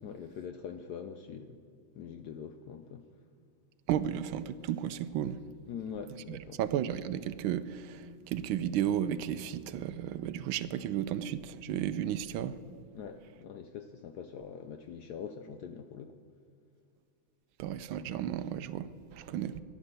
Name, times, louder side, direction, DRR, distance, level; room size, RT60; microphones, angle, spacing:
voice 1, 0.0-1.6 2.0-3.1 5.7-6.6 12.9-16.1 19.4-19.6, left 7 dB, 70° left, 0.9 m, -43 dB
voice 2, 3.9-5.4 6.3-12.6 17.6-19.6, right 10 dB, 80° right, 1.4 m, -33 dB
14.5 x 11.0 x 6.7 m
omnidirectional pair, 2.3 m